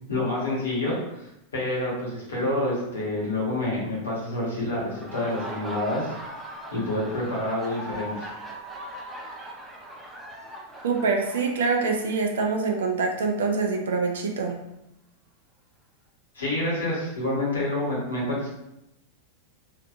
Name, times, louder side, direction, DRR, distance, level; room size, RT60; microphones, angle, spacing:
voice 1, 0.1-1.0 1.5-6.1 6.7-8.3 16.3-18.5, left 1 dB, 70° left, -5 dB, 1.4 m, -28 dB
Laughter, 4.8-12.4, right 1 dB, 10° right, 0.6 m, -39 dB
voice 2, 10.8-14.6, right 4 dB, 65° right, 2 dB, 0.4 m, -25 dB
3.3 x 2.7 x 2.5 m, 0.86 s
figure-of-eight pair, 90°, 0 cm